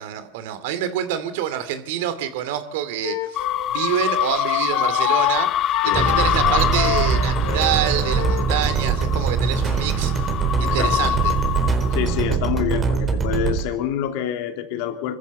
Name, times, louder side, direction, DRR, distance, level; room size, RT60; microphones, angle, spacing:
voice 1, 0.0-5.5 5.8-10.3 10.6-11.4, right 10 dB, 75° right, 12 dB, 2.5 m, -26 dB
Wind instrument woodwind instrument, 3.0-8.5, left 11 dB, 85° left, 2.7 m, -28 dB
sound 1, 3.4-12.2, left 11 dB, 45° left, 0.7 m, -25 dB
sound 2, 5.9-13.6, right 5 dB, 30° right, 3.9 m, -22 dB
voice 2, 10.6-10.9 11.9-15.2, left 10 dB, 65° left, 6 dB, 2.8 m, -27 dB
25.0 x 14.5 x 7.1 m, 0.85 s
supercardioid pair, 110°, 0 cm